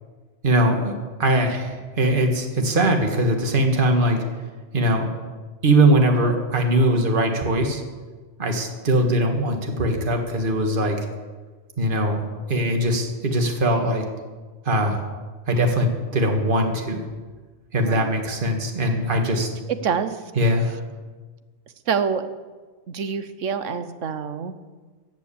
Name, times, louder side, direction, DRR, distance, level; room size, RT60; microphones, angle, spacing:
voice 1, 0.4-4.2 4.7-5.1 5.6-7.8 8.4-11.0 11.8-12.2 12.5-14.0 14.7-15.0 15.5-17.0 17.7-19.5 20.4-20.8, right 1 dB, 40° right, 3 dB, 1.8 m, -21 dB
voice 2, 17.8-18.1 19.8-20.2 21.9-22.3 22.9-24.5, right 6 dB, 70° right, 10 dB, 1.2 m, -26 dB
14.5 x 8.3 x 8.5 m, 1.4 s
omnidirectional pair, 1.4 m